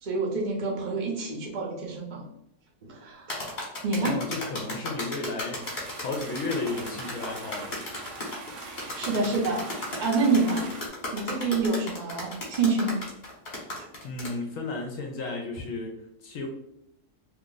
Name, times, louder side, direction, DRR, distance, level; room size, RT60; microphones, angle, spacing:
voice 1, 0.0-2.2 2.8-3.4 3.8-4.2 8.5-9.7 10.0-10.7 11.1-13.0, right 3 dB, 40° right, -1 dB, 0.7 m, -27 dB
sound 1, 3.3-14.3, left 1 dB, 45° left, 1.3 m, -35 dB
voice 2, 4.0-5.7 6.0-7.8 14.0-16.5, left 3 dB, 65° left, 1 dB, 1.0 m, -33 dB
sound 2, 5.6-10.9, right 3 dB, 65° right, 0.9 m, -42 dB
2.9 x 2.4 x 3.8 m, 0.76 s
omnidirectional pair, 1.6 m